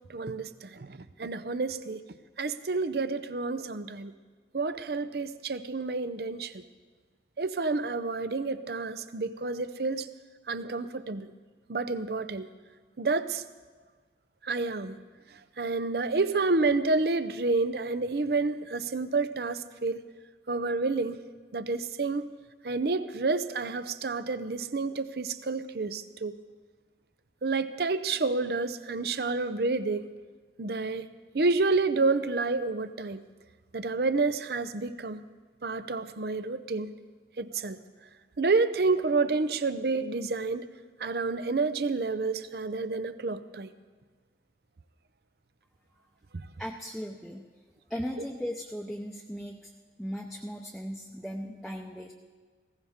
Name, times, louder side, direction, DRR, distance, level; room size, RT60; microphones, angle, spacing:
voice 1, 0.1-2.0 2.4-4.1 4.5-6.6 7.4-10.1 10.5-11.3 11.7-12.5 13.0-13.4 14.4-15.0 15.6-20.0 20.5-21.2 21.5-22.3 22.6-26.4 27.4-30.1 30.6-31.1 31.3-33.2 33.7-35.2 35.6-36.9 37.4-37.8 38.4-40.7 41.0-43.7 46.3-46.5, right 3 dB, 60° right, 12 dB, 0.6 m, -29 dB
voice 2, 46.6-47.5 47.9-49.7 50.0-52.1, equal, ahead, -1 dB, 0.7 m, -37 dB
19.0 x 16.5 x 3.6 m, 1.5 s
head